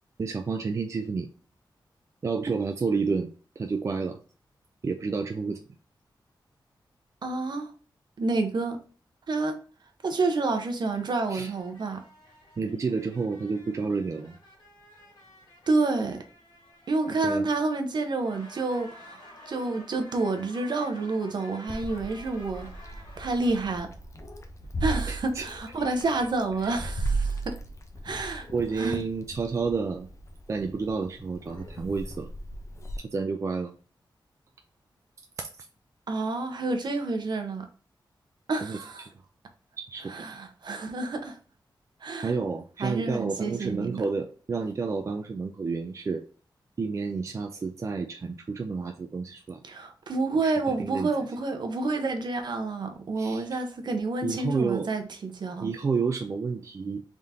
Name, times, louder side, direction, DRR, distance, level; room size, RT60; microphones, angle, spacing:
voice 1, 0.2-1.3 2.2-4.2 4.8-5.6 11.3-11.5 12.6-14.4 17.2-17.5 25.1-25.5 26.6-26.9 28.5-30.1 30.5-32.3 33.1-33.7 38.6-39.1 39.8-40.1 42.2-46.2 46.8-49.6 50.4-50.5 50.8-51.1 53.2-53.5 54.2-54.9 55.6-57.0, right 4 dB, 40° right, 0.4 m, -30 dB
voice 2, 7.2-7.7 8.2-8.8 9.3-9.6 10.0-12.0 15.7-16.2 16.9-23.9 24.8-27.5 28.0-28.5 28.8-29.0 36.1-37.7 38.5-39.0 40.1-41.4 42.0-42.3 42.8-44.0 49.6-55.7, right 3 dB, 65° right, 0.8 m, -29 dB
sound 1, 10.8-17.8 18.1-23.6, left 1 dB, 60° left, 2.0 m, -52 dB
Meow, 21.7-33.0, right 2 dB, 35° left, 0.6 m, -36 dB
3.6 x 3.5 x 2.7 m
wide cardioid pair, 135°, 8 cm